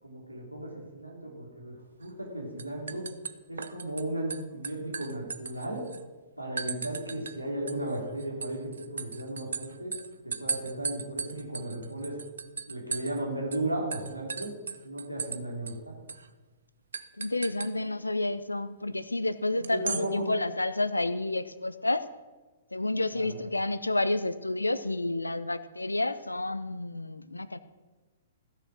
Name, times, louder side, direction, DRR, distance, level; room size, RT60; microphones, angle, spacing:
voice 1, 0.0-3.1 3.5-5.9 6.4-9.9 10.2-12.2 12.7-14.5 14.8-15.9 19.6-20.3 23.1-23.3, right 1 dB, 90° right, -2 dB, 3.0 m, -35 dB
sound 1, 2.0-2.3 2.6-4.0 4.3-6.0 6.6-7.4 7.7-13.2 13.5-13.6 13.9-15.4 15.7-15.8 16.1-16.3 16.9-17.7 19.6-20.1, right 5 dB, 65° right, 0.6 m, -37 dB
voice 2, 17.2-22.1 22.7-27.6, left 2 dB, 80° left, 15 dB, 0.6 m, -30 dB
15.0 x 6.7 x 6.3 m, 1.3 s
figure-of-eight pair, 115°, 0 cm